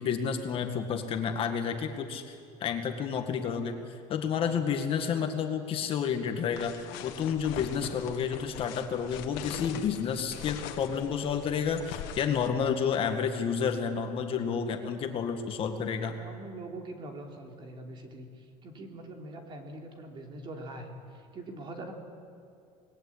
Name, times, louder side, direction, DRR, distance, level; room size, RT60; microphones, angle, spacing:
voice 1, 0.0-2.3 2.6-3.8 4.1-6.7 7.0-16.2, left 7 dB, 35° left, 5 dB, 1.8 m, -30 dB
voice 2, 4.3-4.6 16.1-21.9, right 2 dB, 30° right, 3 dB, 3.1 m, -43 dB
sound 1, 6.5-12.5, left 10 dB, 80° left, 1.8 m, -42 dB
26.5 x 20.5 x 8.7 m, 2.5 s
cardioid pair, 165°, 15 cm